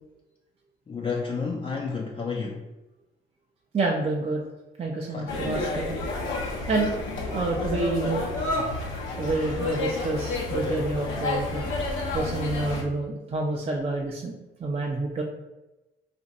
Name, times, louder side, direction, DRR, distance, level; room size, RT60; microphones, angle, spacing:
voice 1, 0.9-2.7 5.1-5.4, left 5 dB, 25° left, -1 dB, 0.4 m, -31 dB
voice 2, 3.7-4.4 4.8-5.9 6.7-6.9 7.3-8.3 9.2-11.7 12.1-15.2, right 2 dB, 30° right, -1 dB, 0.5 m, -28 dB
sound 1, 5.3-12.8, left 2 dB, 85° left, 0.7 m, -30 dB
2.5 x 2.5 x 4.0 m, 1.0 s
cardioid pair, 90°, 20 cm